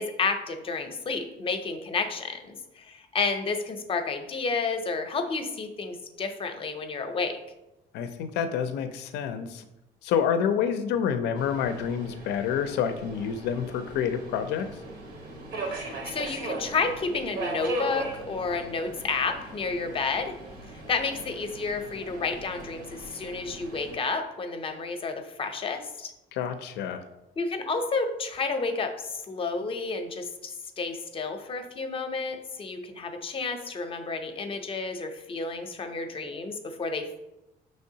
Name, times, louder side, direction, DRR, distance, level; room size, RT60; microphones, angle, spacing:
voice 1, 0.0-7.4 15.6-20.3 20.9-26.1 27.4-37.2, left 4 dB, 35° left, 6 dB, 0.6 m, -31 dB
voice 2, 7.9-9.6 10.0-14.7 26.3-27.0, left 8 dB, 80° left, 9 dB, 0.4 m, -28 dB
Subway metro underground, 11.4-24.0, right 2 dB, 85° right, 1.0 m, -39 dB
5.4 x 3.2 x 2.7 m, 0.94 s
cardioid pair, 110°, 17 cm